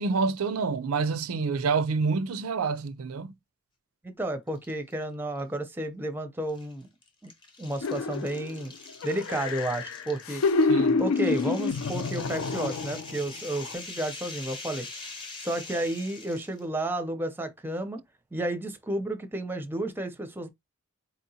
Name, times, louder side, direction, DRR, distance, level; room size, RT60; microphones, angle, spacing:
voice 1, 0.0-3.3 10.7-11.0, right 4 dB, 90° right, 0.5 m, -27 dB
voice 2, 4.0-6.9 7.2-7.3 7.6-8.7 9.0-10.4 11.0-14.9 15.4-18.0 18.3-20.5, right 1 dB, 10° right, 0.5 m, -32 dB
sound 1, 4.5-5.0 5.4-5.5 6.5-16.6, left 3 dB, 25° left, 0.8 m, -44 dB
sound 2, 7.8-8.6 9.0-13.2 13.6-13.7, left 4 dB, 75° left, 0.4 m, -27 dB
4.2 x 2.8 x 2.7 m
head